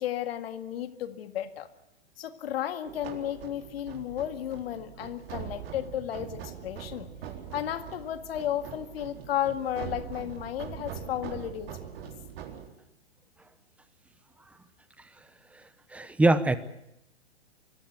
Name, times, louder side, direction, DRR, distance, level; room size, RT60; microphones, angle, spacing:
voice 1, 0.0-1.7 2.2-7.1 7.5-11.7, left 11 dB, 60° left, 10 dB, 2.0 m, -33 dB
sound 1, 2.8-12.7, right 9 dB, 60° right, 4.1 m, -42 dB
voice 2, 15.9-16.6, right 2 dB, 5° right, 14 dB, 1.0 m, -22 dB
24.5 x 15.0 x 9.5 m, 0.83 s
hypercardioid pair, 130°, 34 cm